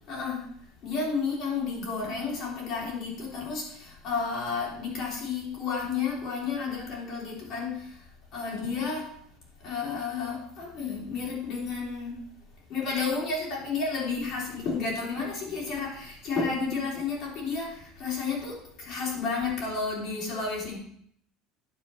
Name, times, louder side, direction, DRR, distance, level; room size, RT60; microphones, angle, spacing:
voice 1, 0.1-0.5 0.8-8.0 8.3-9.1 9.6-12.3 12.7-20.8, left 4 dB, 40° left, -3 dB, 3.3 m, -31 dB
9.5 x 7.3 x 4.3 m, 0.65 s
cardioid pair, 175°, 0 cm